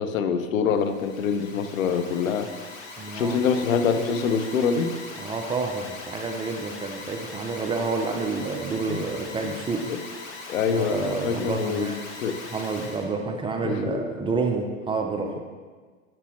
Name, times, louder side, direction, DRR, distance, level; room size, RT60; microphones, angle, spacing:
voice 1, 0.0-2.5 3.1-4.9 8.9-9.0 9.4-9.6 9.9-10.0 10.5-12.4 13.6-14.1 15.2-15.4, left 6 dB, 85° left, 9 dB, 0.6 m, -25 dB
Alarm, 0.7-13.1, left 3 dB, 60° left, 1.5 m, -40 dB
voice 2, 3.0-3.4 5.2-9.9 10.7-12.0 12.5-15.4, right 4 dB, 15° right, 3 dB, 0.4 m, -29 dB
6.6 x 5.9 x 3.1 m, 1.5 s
hypercardioid pair, 100°, 40 cm